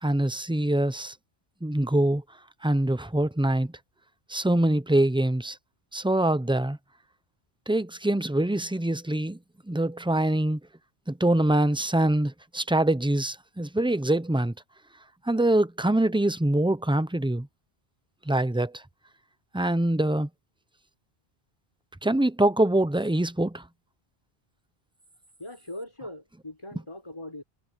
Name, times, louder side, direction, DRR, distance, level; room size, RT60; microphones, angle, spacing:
voice 1, 0.0-1.1 1.6-2.2 2.6-3.7 4.3-5.6 5.9-6.8 7.7-9.4 9.7-10.6 11.1-14.5 15.2-17.5 18.3-18.8 19.5-20.3 22.0-23.6, right 1 dB, 5° right, 0.6 m, -24 dB
voice 2, 25.4-27.4, left 1 dB, 25° left, 4.6 m, -40 dB
omnidirectional pair, 1.0 m